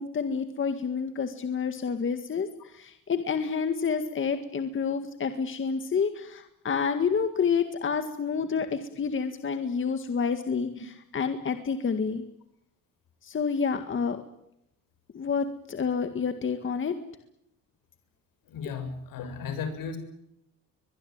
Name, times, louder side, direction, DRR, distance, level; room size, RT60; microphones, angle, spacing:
voice 1, 0.0-12.3 13.2-14.2 15.1-16.9, left 6 dB, 35° left, 8 dB, 1.9 m, -29 dB
voice 2, 18.5-20.0, left 5 dB, 75° left, 9 dB, 6.8 m, -35 dB
23.5 x 21.5 x 8.9 m, 0.79 s
cardioid pair, 120°, 34 cm